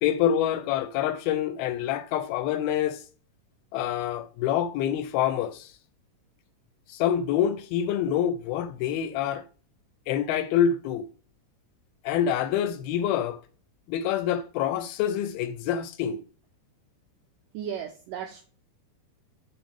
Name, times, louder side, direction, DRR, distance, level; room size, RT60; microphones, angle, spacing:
voice 1, 0.0-3.0 3.7-5.7 6.9-9.4 10.1-11.1 12.0-13.4 13.9-16.2, left 9 dB, 80° left, 2.3 m, -26 dB
voice 2, 17.5-18.4, right 9 dB, 80° right, 1.9 m, -35 dB
7.2 x 3.7 x 4.9 m
omnidirectional pair, 4.5 m